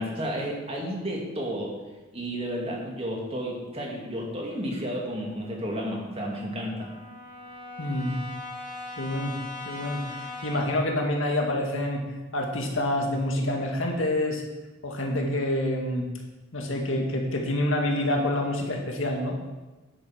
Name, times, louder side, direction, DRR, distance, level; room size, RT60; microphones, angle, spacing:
voice 1, 0.0-1.7 2.1-6.9, equal, 30° right, -1 dB, 2.4 m, -32 dB
Brass instrument, 5.4-10.9, left 2 dB, 5° left, 3.0 m, -40 dB
voice 2, 7.8-8.2 9.0-9.3 9.7-12.0 12.3-14.4 14.8-16.1 16.5-19.4, left 1 dB, 70° left, 1 dB, 2.1 m, -27 dB
10.5 x 8.8 x 5.9 m, 1.2 s
head